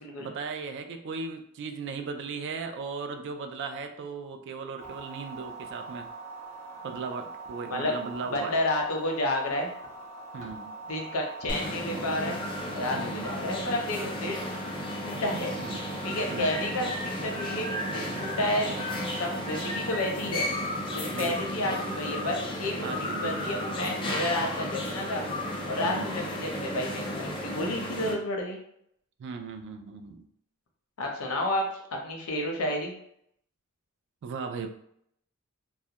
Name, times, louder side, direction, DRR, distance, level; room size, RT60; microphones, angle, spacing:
voice 1, 0.2-6.1 6.8-8.6 10.3-10.7 12.9-13.3 15.6-15.8 16.3-16.6 21.1-21.5 22.8-23.5 25.7-26.3 29.2-30.3 34.2-34.7, right 4 dB, 55° right, 6 dB, 0.3 m, -37 dB
sound 1, 4.8-20.3, right 2 dB, 35° right, 0.8 m, -43 dB
voice 2, 8.2-9.7 10.9-12.4 12.7-14.5 15.0-15.5 16.0-18.9 19.2-20.5 20.9-25.3 25.7-28.6 31.0-32.9, left 1 dB, 80° left, 1 dB, 0.6 m, -31 dB
sound 2, 11.5-28.1, left 1 dB, 25° left, 0.4 m, -33 dB
2.3 x 2.1 x 2.8 m, 0.71 s
head